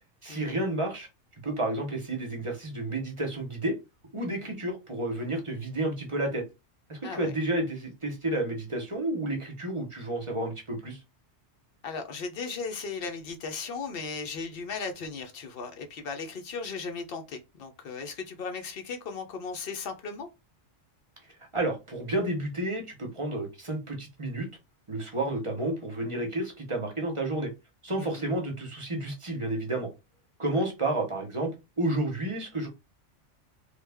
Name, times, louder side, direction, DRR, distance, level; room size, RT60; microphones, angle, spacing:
voice 1, 0.2-1.1 1.4-3.8 4.1-6.4 6.9-11.0 21.5-24.5 24.9-27.5 27.8-29.9 30.4-31.5 31.8-32.7, right 2 dB, 30° right, 0.8 m, -31 dB
voice 2, 11.8-20.3 27.9-28.3 30.5-30.6, left 4 dB, 55° left, 0.8 m, -37 dB
3.2 x 2.3 x 3.4 m
omnidirectional pair, 1.3 m